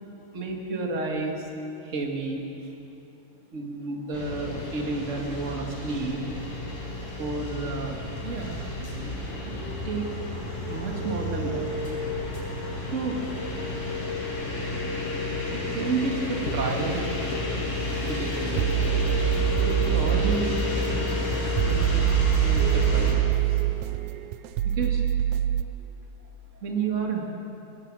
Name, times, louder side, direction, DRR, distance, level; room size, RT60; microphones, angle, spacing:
voice 1, 0.3-1.5 1.8-2.7 3.5-6.2 7.2-8.7 9.4-9.5 9.8-10.1 10.7-11.7 12.8-13.2 15.5-17.3 18.1-18.7 19.6-20.5 21.6-23.6 24.6-25.0 26.5-27.3, right 3 dB, 25° right, 1 dB, 1.9 m, -31 dB
sound 1, 4.1-23.1, left 1 dB, 85° left, 6.2 m, -30 dB
sound 2, 17.9-25.6, right 14 dB, 80° right, 1.8 m, -25 dB
23.0 x 19.0 x 6.3 m, 2.9 s
omnidirectional pair, 3.6 m